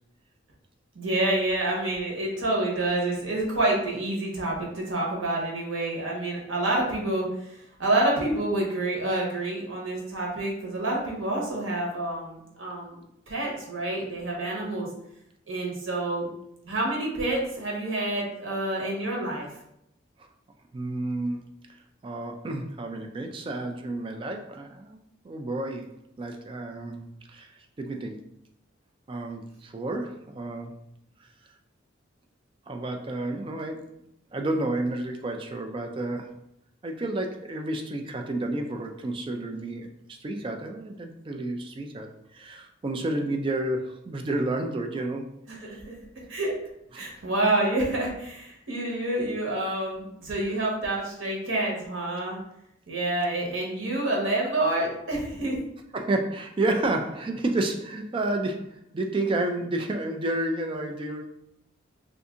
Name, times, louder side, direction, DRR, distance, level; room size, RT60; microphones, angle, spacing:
voice 1, 0.9-13.0 13.3-14.9 15.5-16.3 16.7-19.5 45.5-45.9 46.3-46.5 46.9-52.4 52.9-55.6, right 2 dB, 85° right, -2 dB, 1.1 m, -28 dB
voice 2, 20.7-21.4 22.0-25.0 25.2-25.9 26.2-27.5 27.8-28.2 29.1-30.7 32.7-33.9 34.3-36.3 36.8-45.3 45.7-45.8 46.9-47.1 55.9-61.3, right 2 dB, 25° right, 4 dB, 0.3 m, -30 dB
2.7 x 2.5 x 3.6 m, 0.78 s
head